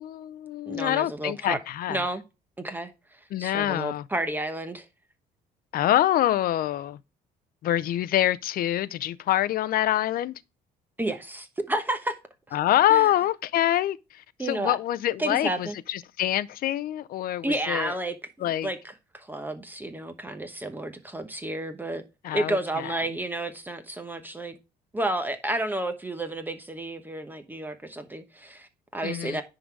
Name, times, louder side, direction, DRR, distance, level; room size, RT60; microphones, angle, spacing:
voice 1, 0.0-2.0 3.3-4.1 5.7-7.0 7.6-10.3 12.5-18.0 18.4-18.7 22.2-22.9 29.0-29.4, left 13 dB, 60° left, 0.5 m, -26 dB
voice 2, 0.7-1.6 1.9-2.2 2.6-2.9 3.4-4.8 11.0-12.1 12.9-13.1 14.4-14.8 15.2-15.8 17.4-18.8 19.1-22.0 22.3-24.5 24.9-29.4, right 1 dB, 10° right, 1.0 m, -31 dB
10.0 x 3.9 x 4.6 m
cardioid pair, 110°, 17 cm